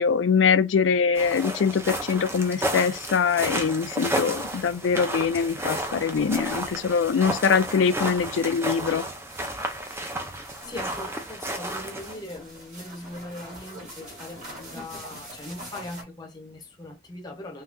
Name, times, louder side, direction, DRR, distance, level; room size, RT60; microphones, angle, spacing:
voice 1, 0.0-9.1, left 6 dB, 80° left, 0.4 m, -23 dB
sound 1, 1.1-12.1, right 1 dB, 15° right, 0.5 m, -32 dB
sound 2, 2.0-16.0, right 1 dB, 35° right, 1.7 m, -46 dB
voice 2, 10.6-17.6, left 1 dB, 20° left, 0.7 m, -40 dB
3.6 x 2.7 x 2.5 m
head